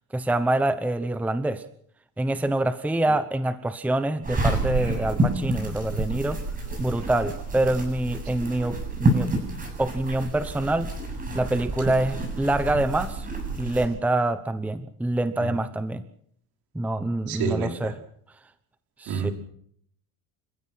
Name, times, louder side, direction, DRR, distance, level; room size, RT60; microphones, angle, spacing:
voice 1, 0.1-1.6 2.2-6.4 6.8-9.3 9.8-10.9 11.3-13.3 13.5-16.0 16.7-18.0 19.0-19.3, right 1 dB, 5° right, 12 dB, 0.9 m, -26 dB
sound 1, 4.2-13.9, right 2 dB, 20° right, 7.8 m, -29 dB
voice 2, 17.3-17.9 19.1-19.3, right 6 dB, 60° right, 4 dB, 5.2 m, -29 dB
29.0 x 16.0 x 5.9 m, 0.66 s
cardioid pair, 145°, 41 cm